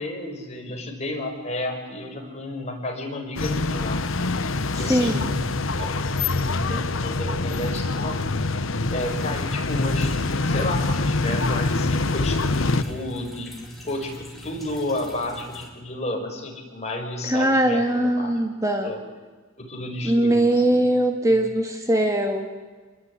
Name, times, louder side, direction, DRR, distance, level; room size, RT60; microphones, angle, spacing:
voice 1, 0.0-4.0 4.7-5.4 5.7-6.0 6.3-8.5 8.9-10.2 10.4-13.5 13.8-18.3 18.8-19.0 19.6-20.9, left 1 dB, 30° left, 1 dB, 5.7 m, -32 dB
sound 1, 3.4-12.8, left 3 dB, 70° left, 1.2 m, -25 dB
voice 2, 4.8-5.3 17.2-18.9 20.0-22.5, right 1 dB, 15° right, 4 dB, 1.9 m, -21 dB
sound 2, 9.0-15.7, equal, ahead, 6.0 m, -42 dB
27.5 x 21.0 x 9.8 m, 1.4 s
head